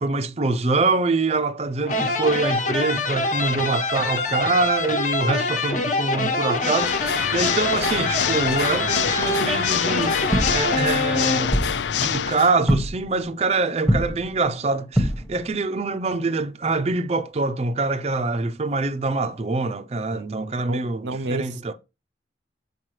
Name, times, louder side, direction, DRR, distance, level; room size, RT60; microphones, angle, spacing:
voice 1, 0.0-7.0 7.3-11.6 11.9-21.7, right 3 dB, 35° right, 0.5 m, -25 dB
sound 1, 1.8-11.8, left 2 dB, 45° left, 1.1 m, -25 dB
Water / Mechanisms, 6.6-12.6, left 8 dB, 80° left, 0.4 m, -26 dB
sound 2, 10.3-11.1 11.5-12.2 12.7-13.2 13.8-14.4 14.9-15.6 16.7-16.9 18.9-19.0, equal, 5° left, 0.9 m, -24 dB
voice 2, 20.1-21.7, right 2 dB, 90° right, 0.6 m, -32 dB
7.4 x 5.3 x 3.1 m
head